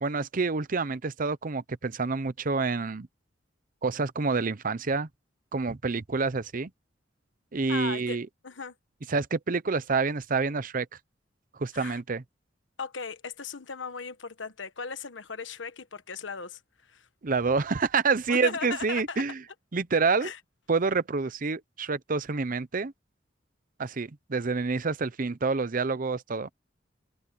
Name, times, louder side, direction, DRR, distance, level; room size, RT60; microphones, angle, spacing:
voice 1, 0.0-3.1 3.8-5.1 5.5-6.7 7.5-8.3 9.1-10.9 11.6-12.2 17.2-19.4 19.7-20.3 20.7-22.9 23.8-26.5, right 4 dB, 45° right, 0.7 m, -28 dB
voice 2, 7.7-8.2 8.4-8.7 11.7-12.0 12.8-17.1 18.3-19.2 20.2-20.4, left 5 dB, 85° left, 1.3 m, -37 dB
head